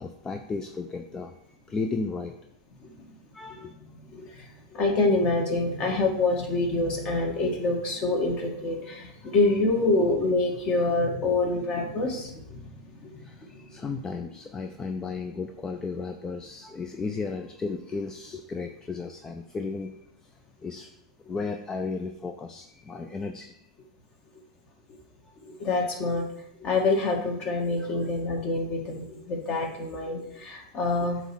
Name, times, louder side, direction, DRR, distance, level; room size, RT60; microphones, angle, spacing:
voice 1, 0.0-1.4 1.7-2.4 3.3-3.7 13.2-20.0 20.6-20.9 21.3-23.6 27.8-27.9, left 4 dB, 20° left, 6 dB, 0.5 m, -34 dB
voice 2, 3.5-12.6 13.0-13.1 25.6-26.3 26.6-31.2, left 2 dB, 35° left, 2 dB, 1.8 m, -26 dB
7.8 x 3.1 x 6.1 m, 0.78 s
hypercardioid pair, 105°, 3 cm